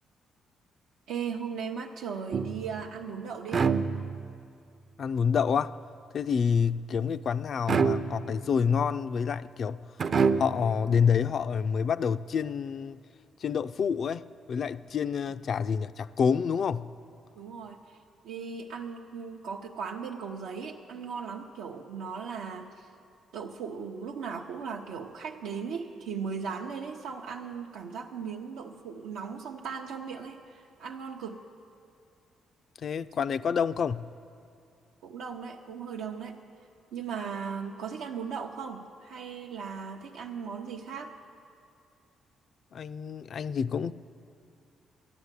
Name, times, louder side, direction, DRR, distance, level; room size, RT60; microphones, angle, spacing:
voice 1, 1.1-3.7 17.3-18.0 18.2-22.9 23.3-31.4 35.0-36.4 36.9-41.2, right 6 dB, 90° right, 0.6 m, -37 dB
sound 1, 2.3-2.9 3.5-4.4 7.7-8.5 10.0-10.8, right 5 dB, 50° right, 0.5 m, -27 dB
voice 2, 5.0-5.8 6.1-9.9 10.4-13.0 13.4-16.9 32.8-34.1 42.7-43.9, left 6 dB, 55° left, 0.3 m, -28 dB
13.0 x 9.7 x 8.2 m
cardioid pair, 90°, 0 cm